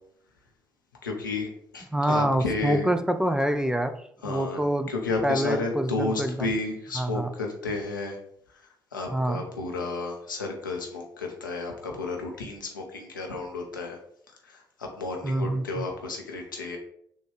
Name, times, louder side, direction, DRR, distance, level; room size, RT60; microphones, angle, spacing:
voice 1, 1.0-2.9 4.2-4.6 4.9-8.2 8.9-14.0 14.4-16.8, left 3 dB, 85° left, 1 dB, 0.5 m, -32 dB
voice 2, 1.9-3.9 4.2-4.9 5.2-6.5 7.0-7.3 9.1-9.4 15.2-15.8, right 1 dB, 5° right, 9 dB, 0.4 m, -26 dB
6.1 x 2.3 x 3.1 m, 0.69 s
figure-of-eight pair, 40°, 10 cm